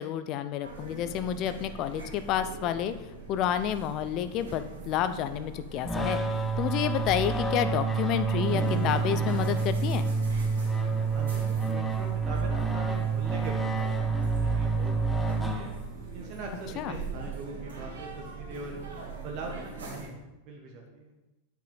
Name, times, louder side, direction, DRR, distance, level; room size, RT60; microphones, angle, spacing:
voice 1, 0.0-2.9 3.3-6.2 6.6-10.1 16.8-16.9, left 10 dB, 40° left, 11 dB, 0.5 m, -30 dB
sound 1, 0.6-20.1, right 3 dB, 65° right, 2.6 m, -41 dB
sound 2, 5.8-16.1, right 4 dB, 5° left, 0.8 m, -28 dB
voice 2, 11.1-14.9 15.3-15.7 16.1-18.8 19.2-20.2 20.4-21.1, right 3 dB, 40° right, 0 dB, 1.3 m, -41 dB
8.4 x 6.2 x 4.0 m, 0.97 s
figure-of-eight pair, 90°, 0 cm